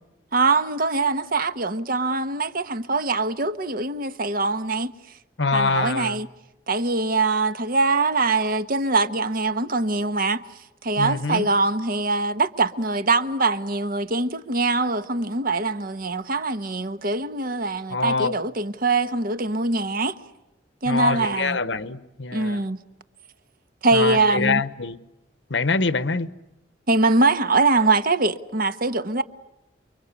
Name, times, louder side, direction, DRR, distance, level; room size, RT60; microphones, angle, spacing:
voice 1, 0.3-4.9 5.5-6.3 6.7-10.4 10.8-20.2 20.8-21.6 22.3-22.8 23.8-24.6 26.9-29.2, right 3 dB, 50° right, 1.3 m, -23 dB
voice 2, 5.4-6.2 11.0-11.5 17.9-18.3 20.8-22.6 23.9-25.0 25.5-26.3, left 4 dB, 75° left, 1.1 m, -24 dB
29.5 x 23.5 x 8.4 m
head